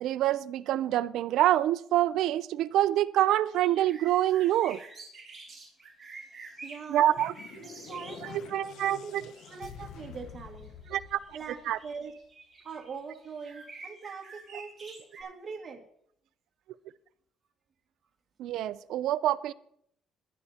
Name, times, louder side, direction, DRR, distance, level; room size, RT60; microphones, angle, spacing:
voice 1, 0.0-4.8 6.9-7.3 8.5-9.2 10.9-11.2 11.7-11.8 18.4-19.5, right 13 dB, 75° right, 0.5 m, -26 dB
sound 1, 3.5-8.2 8.7-15.2, right 3 dB, 15° right, 6.9 m, -48 dB
voice 2, 6.6-7.1 7.6-9.1 9.5-10.7 11.3-11.6 11.8-12.1 12.6-15.9, right 5 dB, 35° right, 2.1 m, -42 dB
sound 2, 6.8-12.1, left 7 dB, 75° left, 1.2 m, -48 dB
21.0 x 11.0 x 2.9 m
cardioid pair, 130°, 0 cm